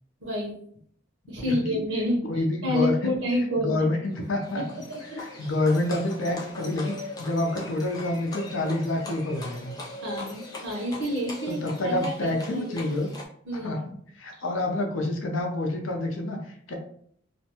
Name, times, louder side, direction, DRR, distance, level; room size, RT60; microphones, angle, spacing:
voice 1, 0.2-0.6 1.3-3.8 4.5-5.5 10.0-12.8 13.5-13.8, equal, 85° right, -3 dB, 0.8 m, -29 dB
voice 2, 1.4-1.8 2.3-3.1 3.6-4.6 5.1-9.7 11.5-13.1 13.6-13.8 14.2-16.4 16.7-16.8, left 2 dB, 85° left, 2 dB, 0.6 m, -28 dB
Livestock farm animals working animals, 4.1-13.3, left 2 dB, 20° left, 0.5 m, -41 dB
2.5 x 2.2 x 2.9 m, 0.63 s
head